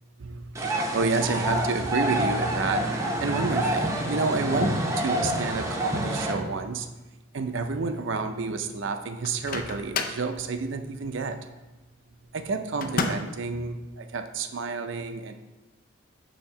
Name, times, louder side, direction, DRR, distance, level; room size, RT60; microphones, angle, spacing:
voice 1, 0.2-6.9 7.3-11.4 12.3-15.3, right 4 dB, 60° right, 7 dB, 0.5 m, -30 dB
sound 1, 0.5-6.3, right 1 dB, 15° right, 0.6 m, -27 dB
Microwave oven, 9.2-10.3 12.8-13.4, left 4 dB, 45° left, 0.4 m, -30 dB
7.0 x 2.9 x 5.7 m, 1.1 s
head